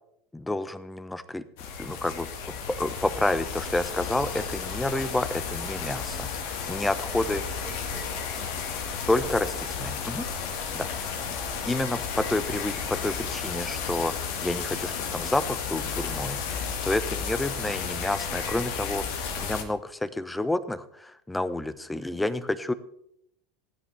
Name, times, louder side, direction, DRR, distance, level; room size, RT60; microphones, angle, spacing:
voice 1, 0.3-1.4 1.8-2.3 2.7-6.3 6.7-7.4 9.1-10.3 10.7-11.1 11.7-16.4 16.8-19.0 19.4-22.7, left 1 dB, 10° left, 14 dB, 0.8 m, -29 dB
sound 1, 1.6-19.6, left 6 dB, 60° left, 1.6 m, -33 dB
voice 2, 7.0-9.1 9.7-10.5 11.2-11.9 16.4-16.8 21.9-22.5, right 4 dB, 65° right, -1 dB, 2.1 m, -51 dB
16.0 x 9.9 x 3.3 m, 0.75 s
figure-of-eight pair, 80°, 0 cm